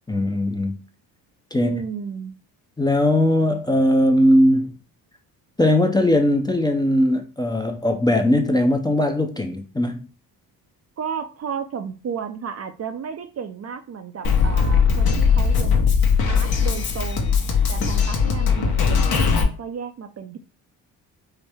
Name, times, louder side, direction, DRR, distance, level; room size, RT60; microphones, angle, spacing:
voice 1, 0.1-0.7 1.5-1.8 2.8-4.7 5.6-10.0 17.8-17.9, left 1 dB, 10° left, 5 dB, 0.5 m, -19 dB
voice 2, 1.6-2.3 11.0-15.8 16.3-17.4 17.7-20.4, right 6 dB, 40° right, 7 dB, 0.5 m, -33 dB
Drum kit, 14.2-19.4, left 6 dB, 60° left, 1.0 m, -19 dB
4.5 x 2.1 x 3.3 m, 0.35 s
cardioid pair, 75°, 41 cm